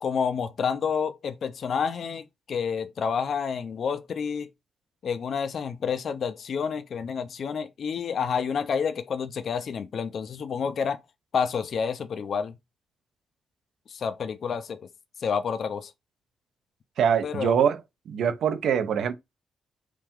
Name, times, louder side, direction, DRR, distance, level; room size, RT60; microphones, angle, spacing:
voice 1, 0.0-4.5 5.0-11.0 11.3-12.6 13.9-14.9 15.2-15.9 17.2-17.5, left 6 dB, 50° left, 0.6 m, -29 dB
voice 2, 17.0-17.8 18.1-19.1, right 8 dB, 70° right, 0.9 m, -23 dB
4.8 x 2.9 x 3.7 m
cardioid pair, 150°, 0 cm